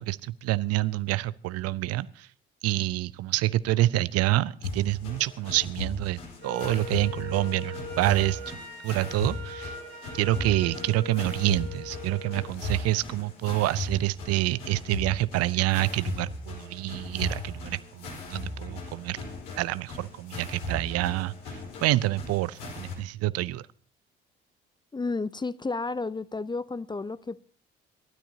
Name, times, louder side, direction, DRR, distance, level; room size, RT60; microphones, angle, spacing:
voice 1, 0.0-2.3 2.6-8.5 8.8-9.8 10.1-19.2 19.6-23.6, right 17 dB, 55° right, 0.6 m, -27 dB
sound 1, 4.6-22.9, left 3 dB, 70° left, 4.4 m, -38 dB
Wind instrument woodwind instrument, 6.4-12.5, left 2 dB, 90° right, 4.3 m, -40 dB
voice 2, 24.9-27.5, left 3 dB, 15° left, 0.6 m, -32 dB
27.0 x 13.0 x 2.8 m
figure-of-eight pair, 45°, 30 cm